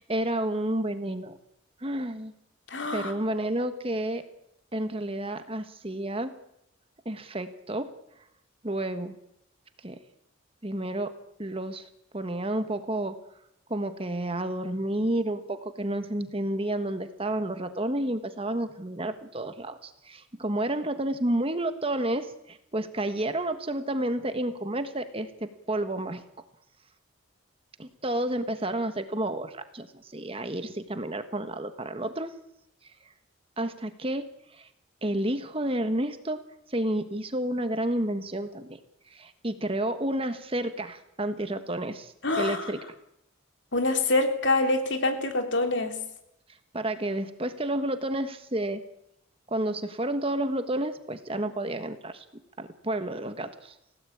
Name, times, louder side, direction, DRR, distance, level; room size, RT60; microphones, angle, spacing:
voice 1, 0.0-1.4 1.8-2.3 2.9-4.2 4.7-6.3 7.0-7.9 8.6-9.1 9.8-10.0 10.6-11.1 11.4-11.9 12.1-13.2 13.7-26.2 27.8-32.3 33.6-34.3 34.5-34.7 35.0-36.4 36.7-38.8 39.1-42.8 46.7-48.8 49.5-52.2 52.6-53.7, right 1 dB, 25° right, 9 dB, 1.5 m, -30 dB
voice 2, 2.7-3.1 42.2-42.7 43.7-46.0, left 2 dB, 60° left, 5 dB, 3.3 m, -25 dB
28.0 x 17.0 x 8.7 m, 0.82 s
head